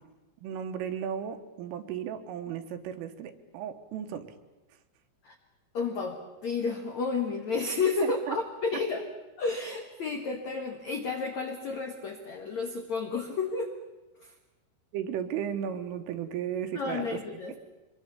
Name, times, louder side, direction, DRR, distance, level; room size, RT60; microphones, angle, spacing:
voice 1, 0.4-4.3 8.0-8.4 14.9-17.1, right 9 dB, 80° right, 8 dB, 3.8 m, -35 dB
voice 2, 5.7-9.0 9.4-13.7 14.2-14.3 16.7-17.6, left 4 dB, 80° left, 4 dB, 1.6 m, -31 dB
25.0 x 22.5 x 7.0 m, 1.1 s
omnidirectional pair, 6.0 m